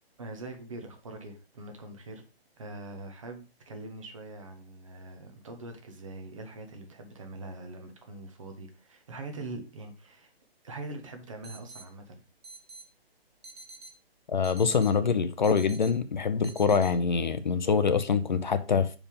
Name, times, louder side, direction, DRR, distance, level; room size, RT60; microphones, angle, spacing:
voice 1, 0.2-2.2 2.6-10.3 10.6-12.2, right 2 dB, 30° right, 1.0 m, -43 dB
sound 1, 11.4-11.8 12.4-12.8 13.4-13.9 14.4-14.9 15.4-15.9 16.4-16.9, right 3 dB, 75° right, 1.8 m, -46 dB
voice 2, 14.3-18.9, left 6 dB, 50° left, 0.6 m, -25 dB
5.4 x 4.8 x 5.1 m
hypercardioid pair, 180°, 31 cm